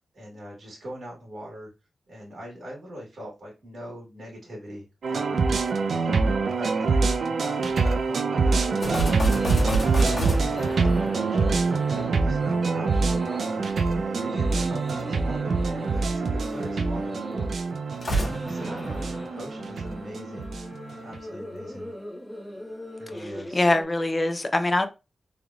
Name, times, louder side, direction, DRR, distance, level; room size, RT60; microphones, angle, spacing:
voice 1, 0.0-1.7 2.1-13.7 14.2-17.5 18.0-20.5 21.0-21.9 23.0-23.7, equal, 55° right, 1.5 m, -41 dB
sound 1, 5.0-21.2, right 4 dB, 70° right, 0.4 m, -25 dB
sound 2, 8.4-23.8, equal, ahead, 1.4 m, -40 dB
sound 3, 8.8-12.2 17.9-20.0, right 2 dB, 55° left, 1.7 m, -29 dB
voice 2, 23.5-24.9, left 2 dB, 25° left, 0.5 m, -23 dB
3.6 x 3.3 x 2.3 m
wide cardioid pair, 120°, 0 cm